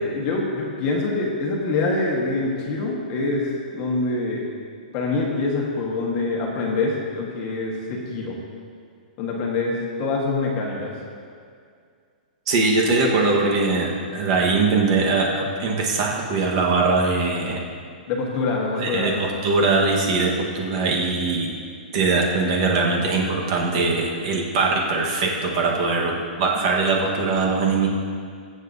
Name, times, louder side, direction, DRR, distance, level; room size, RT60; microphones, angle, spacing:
voice 1, 0.1-4.4 4.9-8.4 9.2-10.9 18.1-19.2, left 3 dB, 25° left, -2 dB, 1.4 m, -25 dB
voice 2, 12.5-17.6 18.8-21.5 21.9-27.9, right 3 dB, 35° right, -1 dB, 1.3 m, -21 dB
22.0 x 7.8 x 2.7 m, 2.2 s
hypercardioid pair, 175°, 5 cm